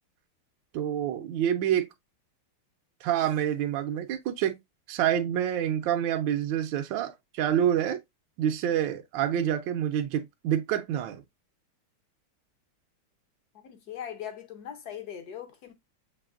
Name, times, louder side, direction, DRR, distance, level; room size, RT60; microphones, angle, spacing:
voice 1, 0.7-1.9 3.0-4.6 4.9-8.0 8.4-11.2, right 10 dB, 70° right, 1.2 m, -27 dB
voice 2, 13.5-15.7, left 9 dB, 60° left, 1.0 m, -40 dB
6.9 x 3.0 x 2.4 m
omnidirectional pair, 2.4 m